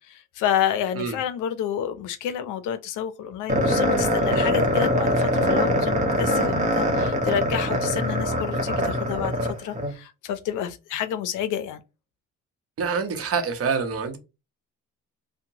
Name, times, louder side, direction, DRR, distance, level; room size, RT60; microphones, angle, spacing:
voice 1, 0.1-11.8, left 9 dB, 90° left, 0.5 m, -29 dB
sound 1, 3.5-9.9, equal, 25° right, 0.9 m, -23 dB
voice 2, 12.8-14.2, right 5 dB, 50° right, 0.8 m, -26 dB
2.8 x 2.1 x 2.6 m
cardioid pair, 90°, 30 cm